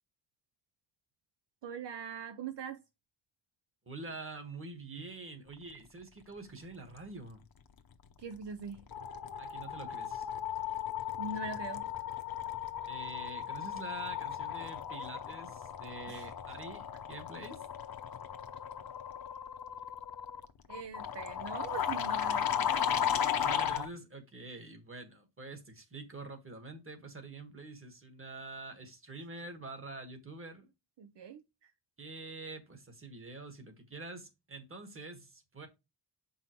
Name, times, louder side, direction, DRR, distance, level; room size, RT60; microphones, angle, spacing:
voice 1, 1.6-2.8 8.2-8.9 11.2-11.9 16.1-16.3 20.7-22.9 31.0-31.7, right 5 dB, 65° right, 0.7 m, -42 dB
voice 2, 3.8-7.4 9.4-10.3 12.9-17.6 23.4-30.7 32.0-35.7, right 2 dB, 30° right, 1.5 m, -46 dB
sound 1, 8.0-8.4 8.6-23.9, left 9 dB, 50° left, 0.8 m, -36 dB
7.5 x 5.6 x 3.0 m
wide cardioid pair, 160°, 45 cm